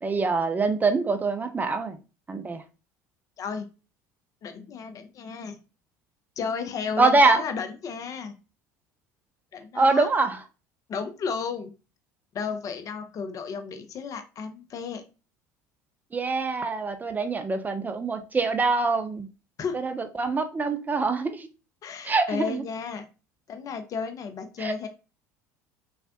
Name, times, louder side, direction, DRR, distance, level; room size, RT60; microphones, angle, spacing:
voice 1, 0.0-2.0 2.3-2.6 7.0-7.4 9.8-10.4 16.1-19.3 19.8-21.5 22.0-22.6 24.6-24.7, right 3 dB, 20° right, 8 dB, 0.4 m, -24 dB
voice 2, 4.4-5.6 6.4-8.4 9.5-10.1 10.9-11.7 12.3-15.0 19.6-19.8 21.8-23.1 23.5-24.9, left 5 dB, 40° left, 8 dB, 0.5 m, -33 dB
3.2 x 2.4 x 2.5 m, 0.32 s
hypercardioid pair, 65°, 9 cm